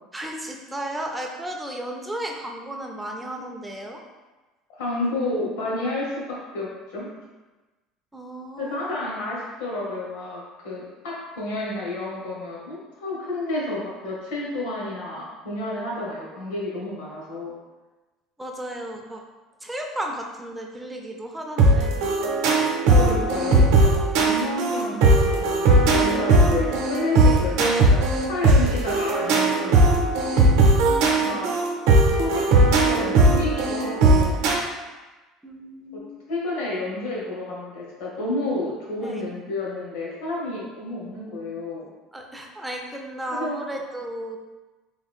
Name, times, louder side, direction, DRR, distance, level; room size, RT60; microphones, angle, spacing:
voice 1, 0.1-4.0 8.1-8.9 18.4-19.2 19.6-21.9 30.4-31.5 35.4-36.2 39.0-39.2 42.1-44.4, right 1 dB, 5° right, 1 dB, 0.3 m, -34 dB
voice 2, 4.8-7.1 8.6-17.5 22.8-29.9 31.2-31.5 32.1-32.4 32.9-34.4 35.9-36.0 36.3-41.9 43.3-43.5, left 2 dB, 85° left, -4 dB, 1.2 m, -30 dB
sound 1, 21.6-34.5, right 2 dB, 70° right, 0.6 m, -18 dB
3.5 x 2.4 x 3.5 m, 1.2 s
cardioid pair, 170°, 0 cm